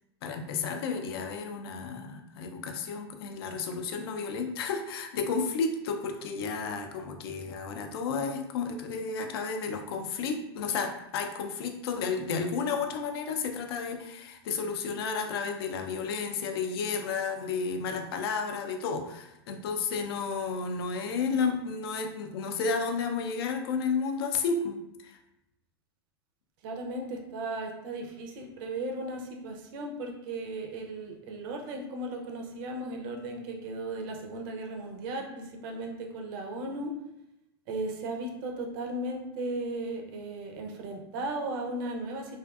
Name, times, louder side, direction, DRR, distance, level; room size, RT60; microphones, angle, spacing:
voice 1, 0.2-25.2, left 5 dB, 65° left, 5 dB, 0.5 m, -32 dB
voice 2, 26.6-36.9 37.7-42.4, right 2 dB, 55° right, 2 dB, 0.5 m, -36 dB
2.5 x 2.4 x 2.3 m, 0.85 s
hypercardioid pair, 105°, 14 cm